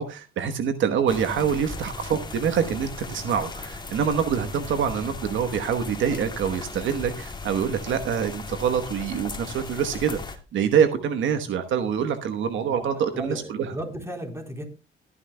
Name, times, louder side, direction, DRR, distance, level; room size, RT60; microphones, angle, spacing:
voice 1, 0.0-10.2 10.5-13.7, right 7 dB, 75° right, 8 dB, 1.1 m, -25 dB
sound 1, 1.1-10.4, left 3 dB, 20° left, 2.0 m, -37 dB
voice 2, 12.7-14.6, right 1 dB, 15° right, 3 dB, 3.8 m, -35 dB
22.5 x 10.0 x 2.2 m, 0.29 s
cardioid pair, 90°, 20 cm